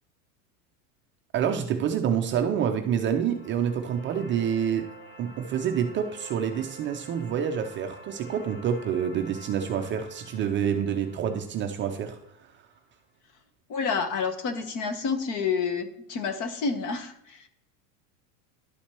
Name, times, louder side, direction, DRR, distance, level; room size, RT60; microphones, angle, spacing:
voice 1, 1.3-12.5, right 8 dB, 30° right, 5 dB, 0.4 m, -28 dB
sound 1, 2.7-12.8, right 1 dB, 75° left, 2.9 m, -49 dB
voice 2, 13.7-17.4, left 5 dB, 45° left, 8 dB, 1.0 m, -29 dB
11.5 x 4.3 x 2.9 m, 0.80 s
supercardioid pair, 125°, 43 cm